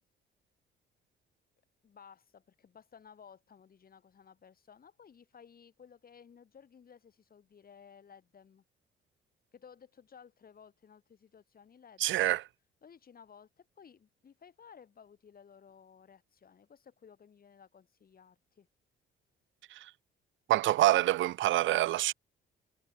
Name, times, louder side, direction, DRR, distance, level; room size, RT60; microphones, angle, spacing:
voice 1, 1.8-8.6 9.5-12.4 12.8-18.7, left 7 dB, 50° left, 7.1 m, -57 dB
voice 2, 12.0-12.4 19.7-19.9 20.5-22.1, right 15 dB, 75° right, 0.6 m, -26 dB
cardioid pair, 90°, 20 cm